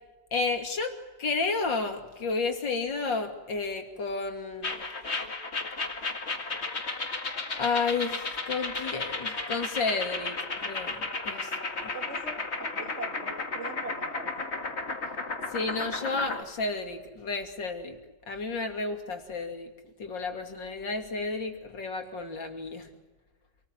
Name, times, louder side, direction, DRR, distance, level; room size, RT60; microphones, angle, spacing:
voice 1, 0.3-4.7 7.6-11.5 11.8-11.9 15.5-18.0 18.3-19.7 20.0-22.9, left 4 dB, 90° left, 4 dB, 3.4 m, -32 dB
sound 1, 4.6-16.4, left 3 dB, 35° left, 2.3 m, -34 dB
voice 2, 11.9-14.7, right 3 dB, 40° right, 5 dB, 2.6 m, -42 dB
27.5 x 20.0 x 9.1 m, 1.2 s
omnidirectional pair, 1.9 m